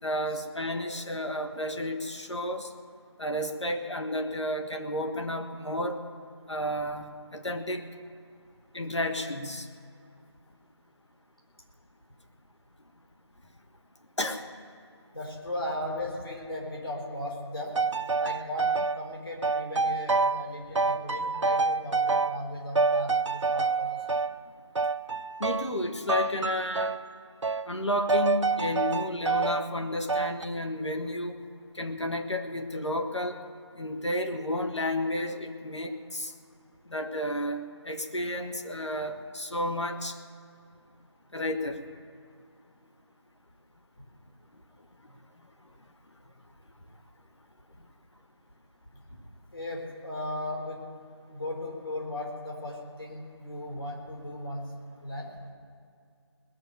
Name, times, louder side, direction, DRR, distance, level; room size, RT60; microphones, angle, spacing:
voice 1, 0.0-2.7 3.2-6.0 6.5-7.8 8.7-9.7 14.2-14.5 25.4-26.9 27.6-31.3 31.7-33.4 33.8-36.3 36.9-40.2 41.3-41.8, left 1 dB, 75° left, 5 dB, 1.6 m, -32 dB
voice 2, 15.1-17.7 18.2-24.0 49.5-50.8 51.3-54.7 55.0-55.3, left 1 dB, 55° left, -2 dB, 4.2 m, -36 dB
sound 1, 17.7-19.0 19.4-20.5 20.8-22.5 22.8-24.3 24.8-25.8 26.1-27.1 27.4-27.7 28.1-29.7 30.1-30.5, right 4 dB, 85° right, 0.5 m, -27 dB
20.0 x 6.8 x 8.3 m, 2.4 s
figure-of-eight pair, 175°, 15 cm